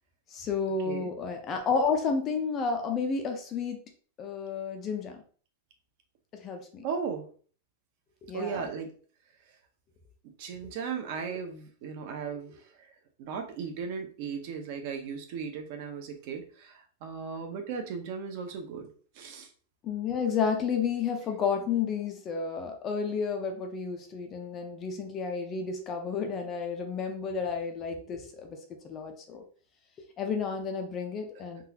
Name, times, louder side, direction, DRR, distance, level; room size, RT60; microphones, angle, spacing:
voice 1, 0.3-3.8 4.2-5.2 6.3-6.8 8.2-8.6 19.8-28.6 28.8-29.4 30.2-31.7, left 5 dB, 20° left, 4 dB, 0.4 m, -31 dB
voice 2, 6.8-7.3 8.3-8.9 10.4-12.9 13.2-18.9 19.1-19.5, right 6 dB, 40° right, 4 dB, 0.6 m, -36 dB
3.8 x 2.3 x 2.7 m, 0.42 s
supercardioid pair, 175°, 0 cm